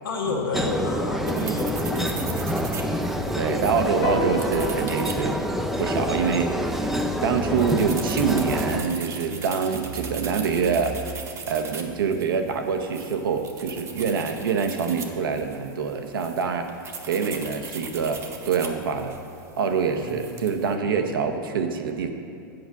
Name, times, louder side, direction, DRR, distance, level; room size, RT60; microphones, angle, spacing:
voice 1, 0.0-3.7 4.0-4.3 14.1-14.2 20.0-20.4 20.8-21.1, left 3 dB, 85° left, 0 dB, 1.2 m, -32 dB
sound 1, 0.5-8.8, equal, ahead, 0.5 m, -27 dB
sound 2, 1.3-20.7, right 4 dB, 25° right, 0.9 m, -39 dB
voice 2, 3.3-5.4 5.8-11.0 11.5-16.7 17.1-19.2 19.6-22.1, right 5 dB, 80° right, 6 dB, 0.9 m, -25 dB
sound 3, 4.0-10.7, left 4 dB, 35° left, 0.9 m, -37 dB
7.9 x 5.1 x 7.3 m, 2.4 s
hypercardioid pair, 115°, 12 cm